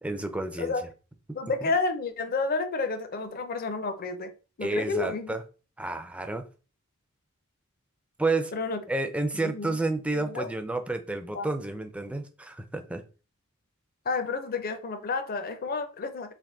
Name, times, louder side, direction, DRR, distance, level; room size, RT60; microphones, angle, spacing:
voice 1, 0.0-0.7 1.6-1.7 4.6-5.4 5.8-6.4 8.2-8.5 8.9-13.0, right 2 dB, 5° right, 0.4 m, -30 dB
voice 2, 1.3-4.3 4.6-5.4 8.5-8.8 9.3-9.8 10.1-10.5 11.3-11.5 14.1-16.3, left 3 dB, 45° left, 0.5 m, -30 dB
3.5 x 2.6 x 3.7 m
head